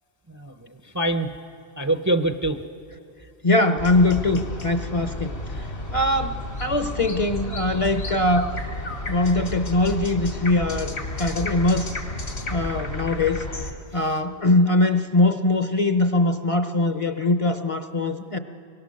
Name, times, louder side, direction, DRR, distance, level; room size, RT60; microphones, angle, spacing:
voice 1, 0.3-1.3 1.8-2.6 13.9-14.2, right 1 dB, 20° right, 7 dB, 0.6 m, -25 dB
voice 2, 3.4-5.6 5.9-8.5 9.1-12.0 12.5-13.4 13.9-18.4, left 2 dB, 35° left, 8 dB, 0.7 m, -22 dB
sound 1, 3.8-13.7, left 1 dB, 75° left, 2.4 m, -32 dB
25.0 x 23.0 x 6.4 m, 2.6 s
omnidirectional pair, 1.1 m